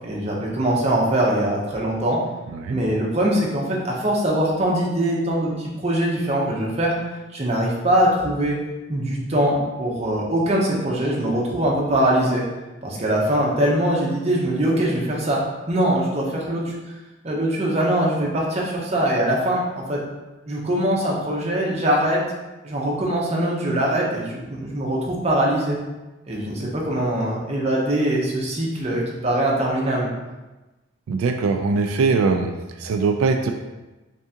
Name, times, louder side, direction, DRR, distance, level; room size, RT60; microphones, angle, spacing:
voice 1, 0.0-2.2 2.7-6.9 7.3-8.6 8.9-12.4 12.8-15.4 15.7-16.7 17.2-20.0 20.5-22.2 22.6-25.8 26.3-30.1, right 1 dB, 30° right, -3 dB, 0.7 m, -22 dB
voice 2, 31.1-32.5 32.8-33.5, right 4 dB, 90° right, 4 dB, 0.3 m, -21 dB
3.6 x 3.4 x 2.8 m, 1.1 s
head